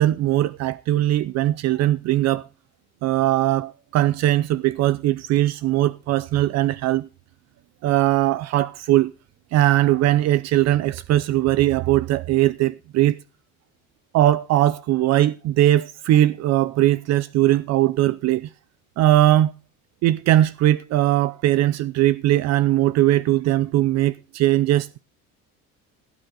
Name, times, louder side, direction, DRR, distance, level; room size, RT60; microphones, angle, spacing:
voice 1, 0.0-2.5 3.0-7.1 7.8-9.1 9.5-13.2 14.1-18.5 19.0-19.5 20.0-25.0, right 14 dB, 50° right, 0.5 m, -20 dB
17.0 x 9.0 x 3.8 m
cardioid pair, 135°, 33 cm